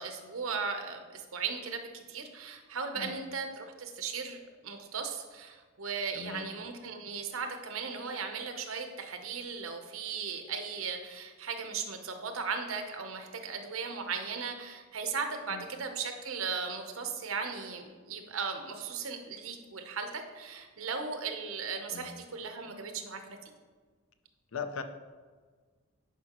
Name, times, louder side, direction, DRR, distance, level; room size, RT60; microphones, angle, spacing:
voice 1, 0.0-23.5, right 5 dB, 90° right, 5 dB, 0.8 m, -37 dB
voice 2, 6.1-6.5 15.5-15.6 21.9-22.1 24.5-24.8, left 5 dB, 75° left, 8 dB, 0.6 m, -39 dB
10.5 x 5.0 x 3.0 m, 1.5 s
head